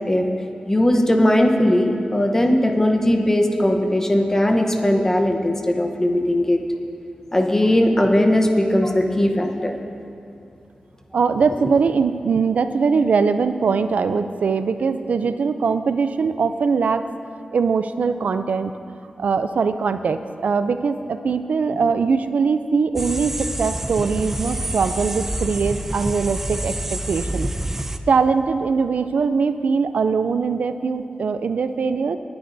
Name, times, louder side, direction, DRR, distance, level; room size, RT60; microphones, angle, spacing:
voice 1, 0.7-6.6 7.3-9.7, left 1 dB, 20° left, 3 dB, 0.9 m, -18 dB
voice 2, 11.1-17.1 17.5-18.7 19.2-27.5 28.1-32.2, right 5 dB, 75° right, 10 dB, 0.4 m, -21 dB
sound 1, 23.0-28.0, right 1 dB, 15° right, 0.4 m, -27 dB
19.0 x 10.5 x 2.7 m, 2.5 s
wide cardioid pair, 125°, 3 cm